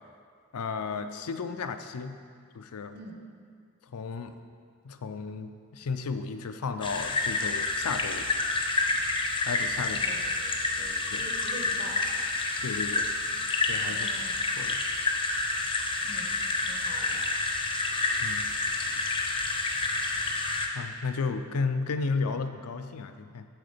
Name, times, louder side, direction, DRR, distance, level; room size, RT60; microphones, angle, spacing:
voice 1, 0.5-2.2 2.5-3.0 3.8-4.3 4.8-8.3 9.5-10.1 11.1-11.2 12.6-13.1 13.7-14.2 14.6-14.8 18.2-18.5 20.7-23.5, left 4 dB, 85° left, 8 dB, 0.5 m, -33 dB
sound 1, 6.8-20.7, left 3 dB, 20° left, 0.6 m, -29 dB
voice 2, 9.9-12.2 13.9-14.4 16.0-16.3 16.7-17.2, right 1 dB, 45° right, 0 dB, 1.1 m, -45 dB
8.9 x 3.9 x 6.6 m, 2.1 s
head